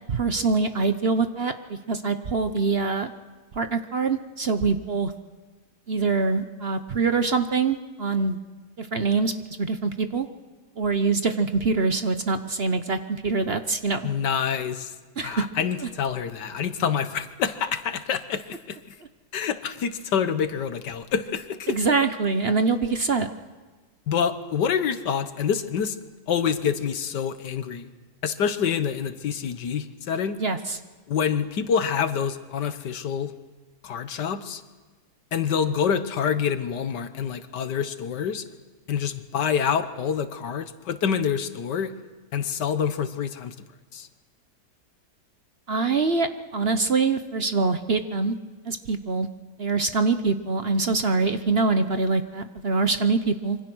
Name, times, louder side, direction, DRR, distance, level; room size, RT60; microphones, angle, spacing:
voice 1, 0.1-3.1 3.5-5.1 5.9-8.4 8.8-9.3 9.6-10.3 10.8-14.1 15.2-15.5 15.8-15.9 21.7-23.3 30.4-30.8 45.7-48.4 48.6-49.3 49.6-53.6, right 4 dB, 45° right, 9 dB, 1.0 m, -24 dB
voice 2, 14.0-14.9 15.2-18.8 19.3-21.8 24.1-26.0 26.3-27.9 28.2-30.4 31.1-33.3 33.8-34.6 35.3-38.4 38.9-41.9 42.3-43.5 43.9-44.1, left 7 dB, 85° left, 11 dB, 1.8 m, -27 dB
26.0 x 24.0 x 6.2 m, 1.3 s
omnidirectional pair, 1.8 m